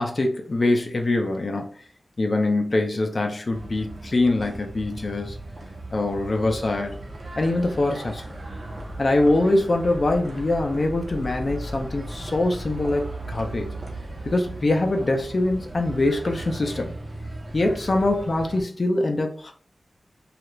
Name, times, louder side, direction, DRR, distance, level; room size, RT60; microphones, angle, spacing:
voice 1, 0.0-1.7 2.2-5.4 5.9-6.9 7.4-8.2 9.0-13.7 14.2-16.9 17.5-19.5, left 2 dB, 50° left, 0.6 m, -23 dB
sound 1, 3.5-18.6, right 1 dB, 45° right, 0.8 m, -37 dB
2.7 x 2.4 x 3.1 m
wide cardioid pair, 105°, 0 cm